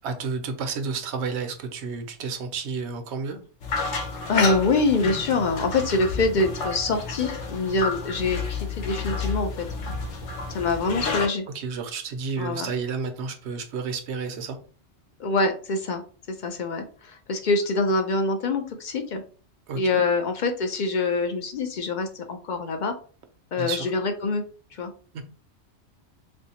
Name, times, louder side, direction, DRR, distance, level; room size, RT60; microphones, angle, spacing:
voice 1, 0.0-3.4 11.5-14.6 19.7-20.0 23.6-23.9 25.1-25.2, right 5 dB, 75° right, 0.9 m, -31 dB
sound 1, 3.6-11.3, left 4 dB, 85° left, 1.0 m, -30 dB
voice 2, 4.3-9.7 10.5-11.5 12.4-12.7 15.2-16.0 16.3-19.2 19.7-22.9 23.5-24.4 24.7-24.9, left 3 dB, 60° left, 0.5 m, -25 dB
3.3 x 2.6 x 2.8 m
omnidirectional pair, 1.2 m